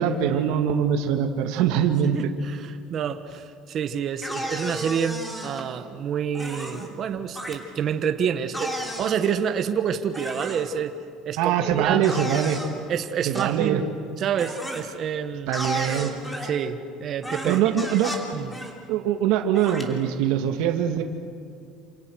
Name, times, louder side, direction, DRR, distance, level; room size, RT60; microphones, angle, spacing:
voice 1, 0.0-2.2 11.4-12.6 13.2-13.8 15.5-16.1 17.4-18.2 18.9-21.0, right 9 dB, 75° right, 5 dB, 2.1 m, -23 dB
voice 2, 2.1-11.0 11.2-12.1 12.9-13.9 14.2-15.6 16.4-17.6 18.3-18.5, right 7 dB, 40° right, 7 dB, 1.2 m, -28 dB
sound 1, 4.2-5.6 6.3-6.9 7.4-7.5 8.5-9.3 10.1-10.7 12.0-12.7 13.3-13.5 14.4-14.8 15.5-16.5 17.2-18.2 18.5-18.7 19.5-19.8, equal, 5° left, 3.2 m, -33 dB
28.5 x 27.5 x 6.5 m, 2.2 s
cardioid pair, 150°, 0 cm